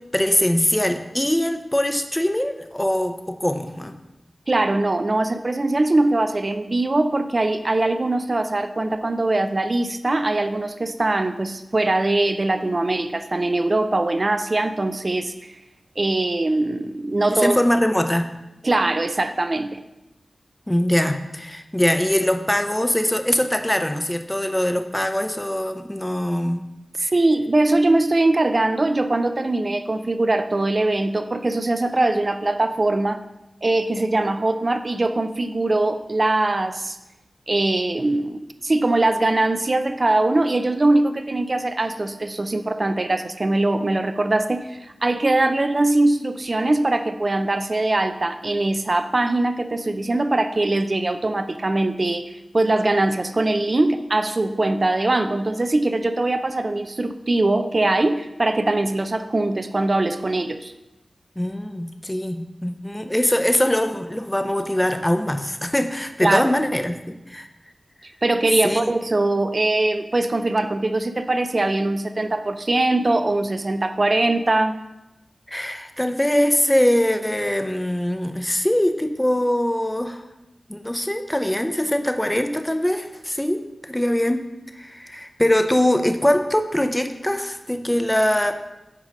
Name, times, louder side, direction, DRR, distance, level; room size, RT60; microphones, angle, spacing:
voice 1, 0.1-3.9 17.3-18.3 20.7-26.7 61.4-67.5 68.6-68.9 75.5-80.2 80.7-84.4 84.7-88.5, left 1 dB, 10° left, 7 dB, 0.6 m, -22 dB
voice 2, 4.5-15.3 16.0-17.6 18.6-19.8 27.0-33.2 33.6-37.0 37.5-60.7 66.2-66.5 68.0-74.8, right 2 dB, 45° right, 9 dB, 0.5 m, -21 dB
8.2 x 5.0 x 3.9 m, 0.97 s
wide cardioid pair, 75°, 0 cm